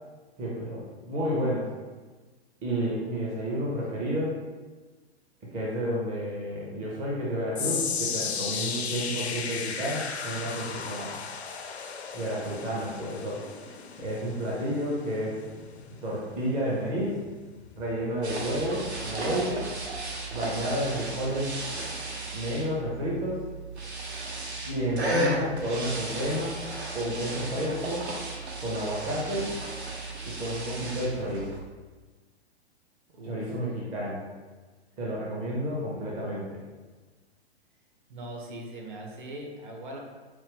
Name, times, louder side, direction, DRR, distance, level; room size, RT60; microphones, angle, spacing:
voice 1, 0.4-1.7 2.6-4.4 5.5-11.2 12.1-13.4 14.0-15.5 16.0-17.2 17.8-19.7 20.3-21.6 22.3-23.4 24.6-26.6 26.9-28.1 28.6-29.5 30.2-31.5 33.2-34.2 35.0-36.6, equal, 15° right, -5 dB, 0.5 m, -31 dB
sound 1, 7.5-19.9 20.2-20.5 21.2-21.3, left 6 dB, 70° left, 0.5 m, -36 dB
sound 2, 18.2-31.6, right 2 dB, 75° right, 0.9 m, -34 dB
voice 2, 33.1-33.5 38.1-40.0, right 1 dB, 45° right, 1 dB, 0.8 m, -40 dB
4.5 x 2.1 x 3.6 m, 1.3 s
figure-of-eight pair, 110°, 33 cm